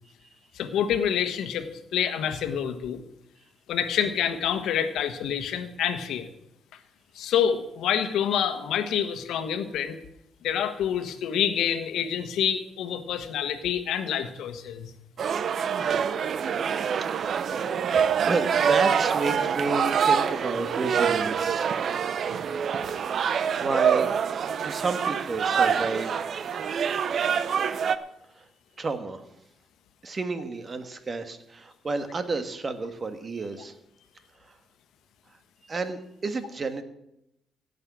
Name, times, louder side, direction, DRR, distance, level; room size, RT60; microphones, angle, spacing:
voice 1, 0.5-3.0 3.7-6.3 7.1-10.0 10.4-14.9 25.5-25.6, left 9 dB, 80° left, 9 dB, 1.3 m, -27 dB
sound 1, 15.2-28.0, right 7 dB, 60° right, 0.7 m, -25 dB
voice 2, 17.0-17.4 18.2-21.8 22.9-23.2 23.5-24.1 24.6-26.3 28.3-28.5 28.8-29.2 30.0-33.7 34.4-34.6 35.6-36.8, right 3 dB, 35° right, 9 dB, 1.6 m, -31 dB
17.0 x 6.6 x 6.2 m, 0.81 s
cardioid pair, 85°, 0 cm